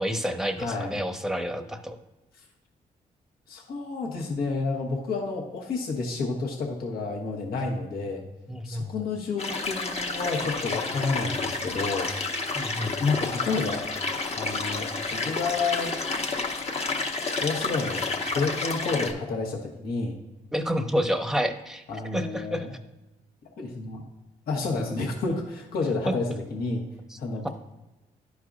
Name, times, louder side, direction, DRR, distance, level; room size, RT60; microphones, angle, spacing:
voice 1, 0.0-2.0 8.5-8.9 12.5-13.0 20.5-21.8 22.1-22.7 26.1-26.2, equal, 5° right, 8 dB, 0.8 m, -29 dB
voice 2, 0.6-1.0 3.5-8.2 8.6-12.1 13.0-13.9 14.4-16.0 17.4-18.1 18.3-20.2 21.9-22.7 23.6-24.0 24.5-26.9 27.2-27.5, left 3 dB, 75° left, 0 dB, 1.3 m, -30 dB
sound 1, 9.4-19.1, left 3 dB, 40° left, 1.0 m, -30 dB
11.5 x 4.7 x 2.5 m, 1.0 s
supercardioid pair, 65°, 16 cm